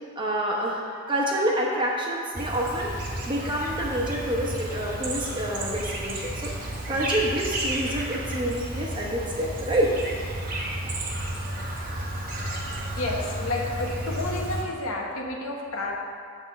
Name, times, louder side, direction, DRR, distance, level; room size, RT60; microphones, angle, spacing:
voice 1, 0.2-2.9 3.3-9.9, right 1 dB, 20° right, -2 dB, 1.0 m, -28 dB
Chirp tweet, 2.3-14.6, right 1 dB, 40° right, 1.3 m, -32 dB
voice 2, 13.0-15.9, left 2 dB, 75° left, -1 dB, 1.1 m, -30 dB
8.7 x 3.6 x 6.7 m, 2.2 s
head